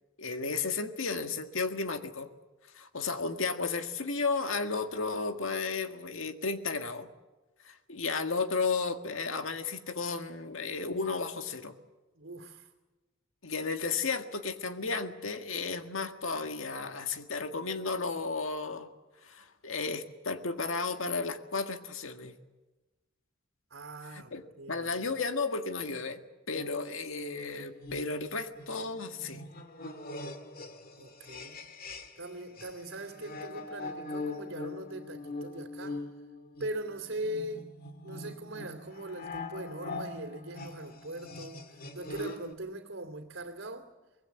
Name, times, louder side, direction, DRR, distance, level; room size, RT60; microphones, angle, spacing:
voice 1, 0.2-2.3 2.7-7.1 7.6-11.8 13.4-18.9 19.2-22.3 24.1-26.2 26.5-29.4, left 4 dB, 85° left, 1.8 m, -33 dB
voice 2, 12.1-12.7 23.7-25.0 31.0-31.6 32.2-36.0 36.6-37.7 38.0-43.9, right 1 dB, 80° right, 2.6 m, -41 dB
sound 1, 26.5-32.3 32.6-42.5, left 3 dB, 50° left, 2.0 m, -42 dB
24.5 x 20.5 x 8.4 m
head